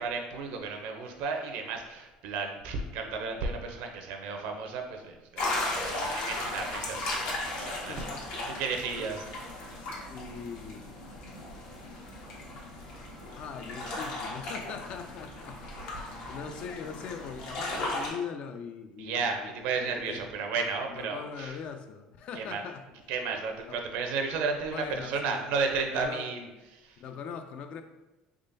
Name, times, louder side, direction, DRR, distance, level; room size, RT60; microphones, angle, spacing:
voice 1, 0.0-8.0 8.5-9.2 9.6-9.8 19.0-21.6 22.3-22.6 23.1-27.0, right 4 dB, 75° right, 4 dB, 0.6 m, -33 dB
sound 1, 5.4-18.1, left 2 dB, 75° left, 1.0 m, -36 dB
voice 2, 7.9-8.3 8.9-9.1 9.8-10.9 13.4-15.6 16.1-19.5 20.0-20.2 20.9-22.8 23.7-23.8 24.7-25.4 25.9-26.3 27.0-27.8, left 6 dB, 55° left, 7 dB, 0.4 m, -41 dB
3.6 x 3.3 x 2.6 m, 1.1 s
cardioid pair, 120°, 2 cm